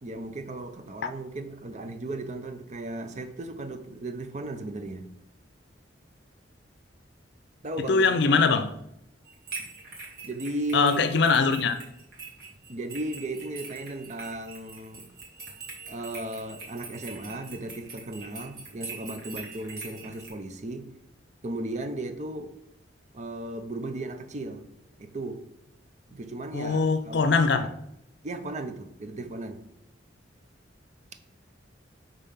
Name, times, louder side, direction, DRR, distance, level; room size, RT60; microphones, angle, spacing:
voice 1, 0.0-5.1 7.6-8.4 10.2-11.1 12.7-15.1 15.9-20.9 21.4-22.5 23.1-24.7 25.0-25.4 26.1-27.7 28.2-29.6, right 2 dB, 40° right, 0.6 m, -36 dB
voice 2, 7.9-8.7 10.7-11.8 26.5-27.7, left 4 dB, 65° left, 0.5 m, -22 dB
sound 1, 9.3-20.3, right 4 dB, 60° right, 1.9 m, -43 dB
5.5 x 3.7 x 5.6 m
head